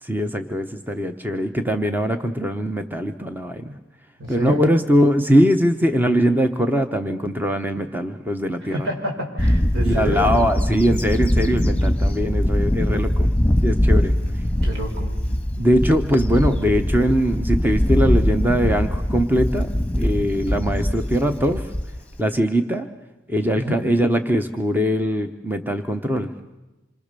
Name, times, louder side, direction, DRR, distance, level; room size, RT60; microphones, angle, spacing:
voice 1, 0.0-3.8 4.3-8.9 9.8-13.3 13.6-14.2 15.6-21.7 22.2-22.9 23.3-26.3, equal, 10° right, 7 dB, 0.9 m, -21 dB
voice 2, 4.2-4.6 8.6-10.4 14.1-15.1 23.5-23.8, right 1 dB, 65° right, 2 dB, 5.4 m, -29 dB
Bird / Wind, 9.4-22.2, equal, 5° left, 1.5 m, -21 dB
27.0 x 24.0 x 6.8 m, 1.1 s
head